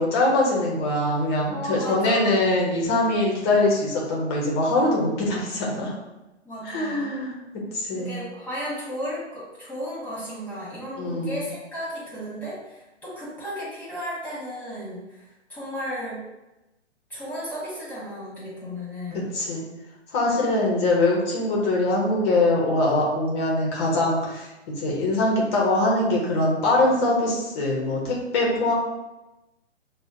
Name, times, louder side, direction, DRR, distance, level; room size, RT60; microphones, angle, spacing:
voice 1, 0.0-5.9 6.6-7.3 7.7-8.2 11.0-11.4 19.3-19.6 20.1-28.7, left 2 dB, 25° left, -3 dB, 0.7 m, -23 dB
voice 2, 1.5-2.4 6.4-7.1 8.0-16.2 17.1-19.3 20.3-20.6, equal, 5° left, -9 dB, 1.2 m, -34 dB
6.2 x 2.1 x 2.4 m, 1.0 s
hypercardioid pair, 135°, 36 cm